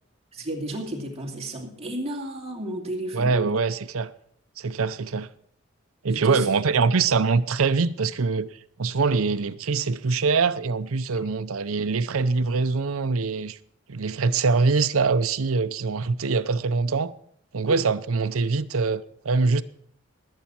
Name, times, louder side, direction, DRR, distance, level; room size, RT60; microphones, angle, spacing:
voice 1, 0.3-3.5 6.1-6.5 11.1-11.3 17.7-17.8, right 1 dB, 30° right, 2.6 m, -32 dB
voice 2, 3.1-4.1 4.6-5.3 6.0-8.5 8.8-13.6 13.9-17.1 17.5-19.6, right 4 dB, 90° right, 0.7 m, -23 dB
20.0 x 8.3 x 4.4 m
head